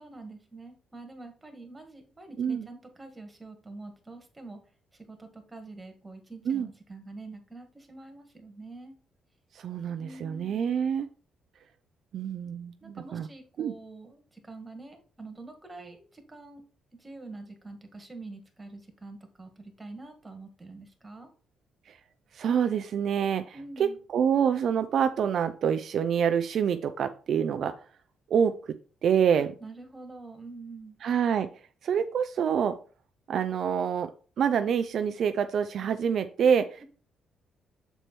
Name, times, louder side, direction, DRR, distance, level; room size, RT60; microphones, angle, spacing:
voice 1, 0.0-4.6 4.9-9.0 10.0-10.7 12.8-16.6 17.0-21.3 23.5-24.0 29.3-31.0, right 3 dB, 15° right, 6 dB, 1.8 m, -45 dB
voice 2, 9.5-11.1 12.1-13.3 13.6-13.7 21.9-22.0 22.3-27.7 28.3-28.8 29.0-29.5 31.0-31.5 31.8-32.8 33.3-34.1 34.4-36.8, right 7 dB, 65° right, 9 dB, 0.4 m, -26 dB
6.8 x 4.4 x 4.4 m, 0.38 s
cardioid pair, 90°, 0 cm